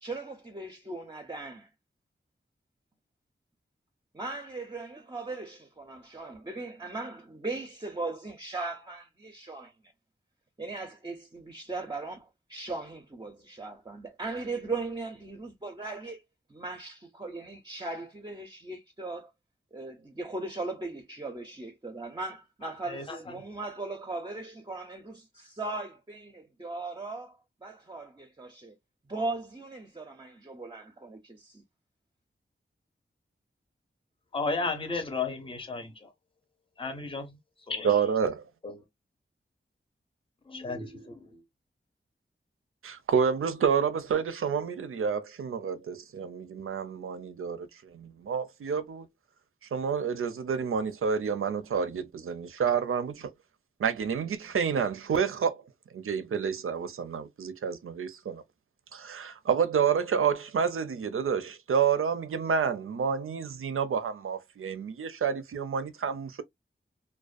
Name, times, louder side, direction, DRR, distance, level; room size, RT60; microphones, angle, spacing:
voice 1, 0.0-1.7 4.1-9.7 10.6-16.2 16.5-19.3 19.7-28.7 29.1-31.6, right 3 dB, 20° right, 0.5 m, -38 dB
voice 2, 22.6-23.3 34.3-36.1 36.8-37.4 37.7-37.9 38.6-38.8 40.5-41.1, left 3 dB, 25° left, 0.6 m, -34 dB
voice 3, 37.8-38.4 42.8-49.1 49.7-53.3 53.8-55.6 55.9-58.4 58.9-66.4, right 6 dB, 85° right, 0.4 m, -29 dB
2.4 x 2.1 x 2.4 m
wide cardioid pair, 80°, 21 cm